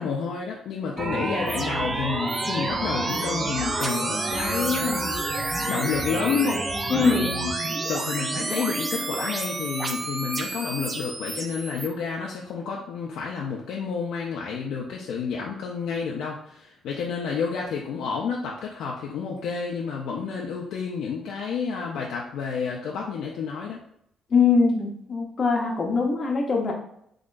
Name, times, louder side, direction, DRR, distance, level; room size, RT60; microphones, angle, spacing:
voice 1, 0.0-6.6 6.9-7.5 7.9-23.8, left 6 dB, 80° left, -2 dB, 0.4 m, -30 dB
sound 1, 1.0-11.9, right 2 dB, 30° right, 0.5 m, -29 dB
voice 2, 6.9-7.3 24.3-26.7, left 4 dB, 45° left, 0 dB, 0.7 m, -22 dB
3.7 x 3.0 x 2.5 m, 0.71 s
cardioid pair, 90°, 0 cm